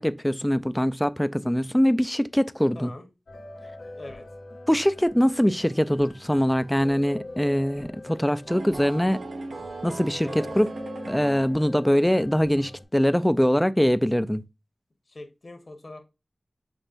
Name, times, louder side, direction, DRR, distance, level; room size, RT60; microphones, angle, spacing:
voice 1, 0.0-2.9 4.7-9.2 9.8-10.7 11.1-14.4, equal, 5° left, 0.4 m, -23 dB
voice 2, 2.7-3.1 3.9-4.2 10.2-10.5 15.1-16.0, left 2 dB, 50° left, 1.2 m, -42 dB
sound 1, 3.3-12.8, left 2 dB, 90° left, 1.3 m, -44 dB
sound 2, 8.5-11.9, right 3 dB, 80° right, 0.7 m, -38 dB
6.1 x 3.3 x 2.5 m
wide cardioid pair, 75°, 0 cm